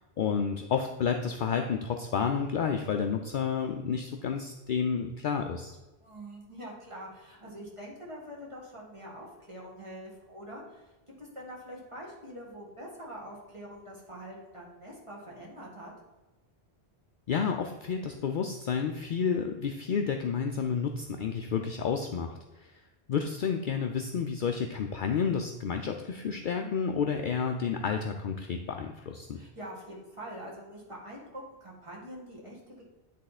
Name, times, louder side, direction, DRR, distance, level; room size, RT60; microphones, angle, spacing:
voice 1, 0.2-5.8 17.3-22.7 23.1-29.4, left 6 dB, 60° left, 4 dB, 0.6 m, -30 dB
voice 2, 6.0-10.9 11.2-15.9 29.3-32.8, equal, 30° right, -4 dB, 1.8 m, -44 dB
10.0 x 3.7 x 4.1 m, 1.1 s
omnidirectional pair, 1.1 m